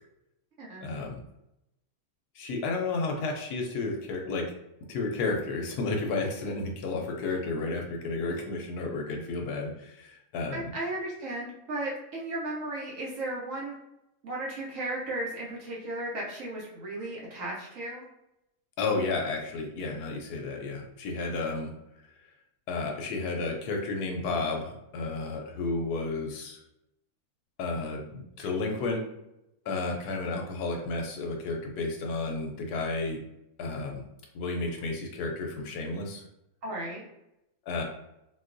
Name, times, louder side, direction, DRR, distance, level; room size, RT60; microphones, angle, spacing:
voice 1, 0.8-1.2 2.4-4.5 4.9-10.7 18.8-21.7 22.7-26.6 27.6-29.0 29.7-33.2 33.6-34.0 34.3-36.2 37.7-37.8, left 3 dB, 75° left, 2 dB, 1.0 m, -32 dB
voice 2, 10.5-13.7 14.2-18.0 36.6-37.1, right 1 dB, 60° right, -4 dB, 0.9 m, -35 dB
3.9 x 2.3 x 2.5 m, 0.86 s
omnidirectional pair, 1.8 m